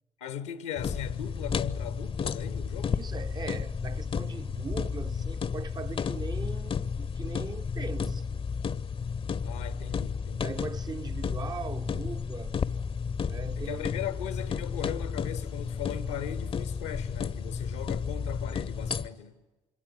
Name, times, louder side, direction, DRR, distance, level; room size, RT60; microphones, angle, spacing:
voice 1, 0.2-3.0 9.4-10.5 13.6-19.4, left 10 dB, 80° left, 1.2 m, -38 dB
sound 1, 0.8-19.1, left 6 dB, 40° left, 0.8 m, -32 dB
voice 2, 2.8-8.2 10.4-12.7 13.3-13.9, right 4 dB, 30° right, 0.8 m, -40 dB
26.5 x 23.0 x 9.3 m
figure-of-eight pair, 40°, 15 cm